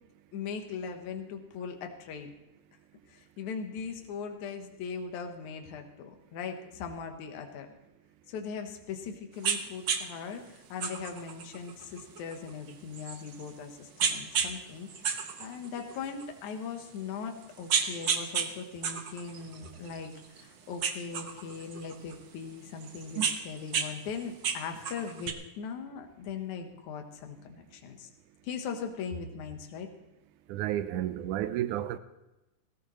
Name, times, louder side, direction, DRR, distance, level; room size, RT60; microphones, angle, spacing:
voice 1, 0.3-2.3 3.1-7.7 8.3-28.1 28.4-29.9, left 6 dB, 75° left, 2.6 m, -40 dB
sound 1, 9.4-9.6 9.9-10.0 10.8-13.5 14.0-14.5 14.9-16.2 16.8-16.9 17.4-18.5 18.8-20.4 20.8-22.1 22.8-23.9 24.2-25.3, right 6 dB, 60° right, 1.2 m, -31 dB
voice 2, 30.5-32.0, right 12 dB, 80° right, 2.2 m, -31 dB
17.5 x 16.0 x 3.1 m
omnidirectional pair, 3.5 m